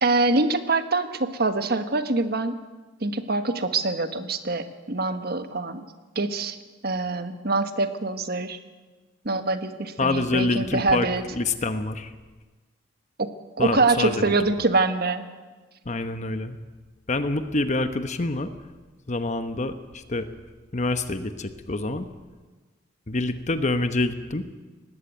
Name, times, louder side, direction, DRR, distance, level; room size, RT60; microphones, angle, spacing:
voice 1, 0.0-2.6 3.0-5.9 6.1-6.6 6.8-8.6 9.2-11.2 13.2-13.3 13.6-15.3, right 3 dB, 55° right, 9 dB, 1.4 m, -24 dB
voice 2, 10.0-11.1 11.3-12.1 13.6-14.4 15.9-16.6 17.1-18.5 19.1-20.3 20.7-22.1 23.1-24.5, left 2 dB, 40° left, 10 dB, 1.0 m, -26 dB
19.0 x 15.5 x 9.2 m, 1.3 s
head